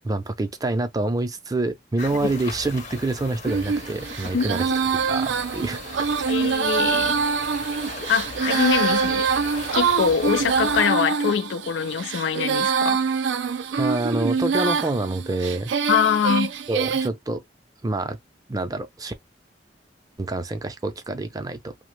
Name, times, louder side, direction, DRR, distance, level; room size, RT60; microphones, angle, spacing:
voice 1, 0.0-4.7 5.0-5.8 13.8-15.7 16.7-17.4 17.8-18.2 18.5-19.1 20.2-21.7, right 2 dB, 20° right, 0.4 m, -27 dB
sound 1, 2.0-10.8, left 3 dB, 45° left, 0.7 m, -36 dB
Female singing, 3.5-17.1, right 5 dB, 80° right, 0.4 m, -25 dB
voice 2, 6.3-7.2 8.1-9.3 9.7-13.0 15.9-16.5, left 7 dB, 85° left, 0.4 m, -23 dB
2.8 x 2.0 x 3.1 m
head